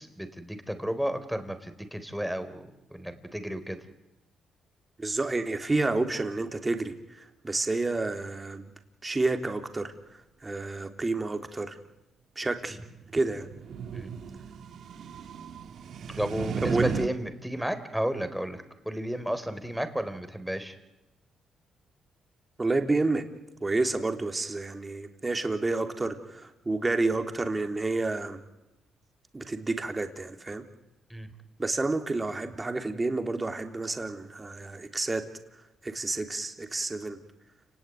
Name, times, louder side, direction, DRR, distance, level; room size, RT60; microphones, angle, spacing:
voice 1, 0.0-3.8 13.9-14.1 16.1-20.8 31.1-31.3, equal, ahead, 9 dB, 4.0 m, -33 dB
voice 2, 5.0-8.7 9.0-11.8 12.4-12.8 13.1-13.5 16.6-16.9 22.6-23.3 23.6-28.4 29.3-30.6 31.6-35.2 35.5-37.2, right 3 dB, 20° right, 6 dB, 3.5 m, -30 dB
sound 1, 12.8-17.1, right 7 dB, 65° right, 2.0 m, -36 dB
29.5 x 19.0 x 9.5 m, 0.97 s
cardioid pair, 90°, 0 cm